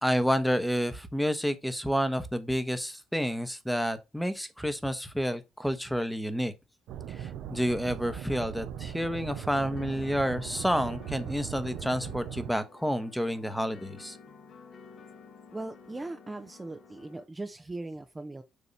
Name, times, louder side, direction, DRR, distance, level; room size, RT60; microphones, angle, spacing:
voice 1, 0.0-6.5 7.2-14.2, equal, ahead, 1.1 m, -29 dB
sound 1, 6.9-12.5, right 9 dB, 85° right, 0.6 m, -39 dB
sound 2, 9.3-17.2, left 5 dB, 55° left, 1.6 m, -52 dB
voice 2, 15.5-18.4, right 2 dB, 20° right, 0.7 m, -39 dB
7.0 x 3.0 x 5.4 m
cardioid pair, 90°, 0 cm